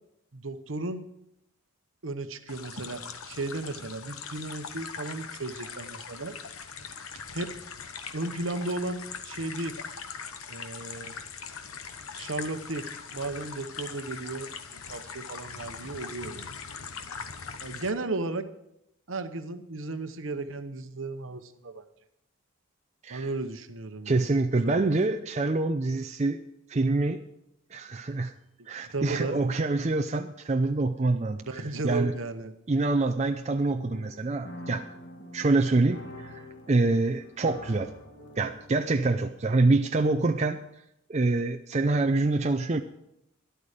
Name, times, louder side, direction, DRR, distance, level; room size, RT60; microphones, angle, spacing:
voice 1, 0.3-1.0 2.0-6.4 7.3-7.5 8.1-9.8 10.5-11.1 12.1-12.9 13.1-16.5 17.6-18.5 19.1-21.8 23.1-24.9 28.8-29.4 31.3-32.5, right 2 dB, 65° right, 9 dB, 1.0 m, -35 dB
sound 1, 2.5-17.9, left 6 dB, 85° left, 1.1 m, -41 dB
voice 2, 24.1-26.4 26.7-27.2 27.7-28.3 28.7-32.1 32.7-34.8 35.3-36.4 36.7-37.9 38.4-40.6 41.1-42.8, right 2 dB, 30° right, 6 dB, 0.5 m, -26 dB
sound 2, 33.8-39.5, equal, 55° left, 1.9 m, -46 dB
12.5 x 11.5 x 5.0 m, 0.80 s
head